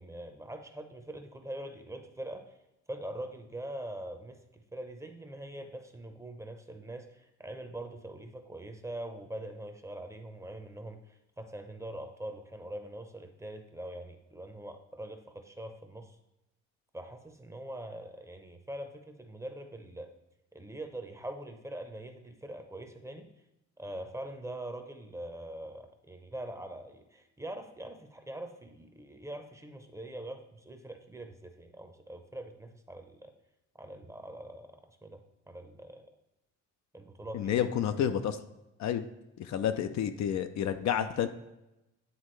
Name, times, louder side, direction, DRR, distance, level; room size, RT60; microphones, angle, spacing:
voice 1, 0.0-2.5 2.9-16.2 16.9-20.1 20.5-23.3 23.8-33.3 33.8-35.2 35.5-36.0 36.9-37.5 39.5-39.6, right 1 dB, 10° right, 6 dB, 0.7 m, -43 dB
voice 2, 37.3-38.4 38.8-39.0 39.4-41.3, left 9 dB, 65° left, 9 dB, 0.5 m, -30 dB
9.5 x 3.6 x 3.2 m, 0.93 s
cardioid pair, 90°, 30 cm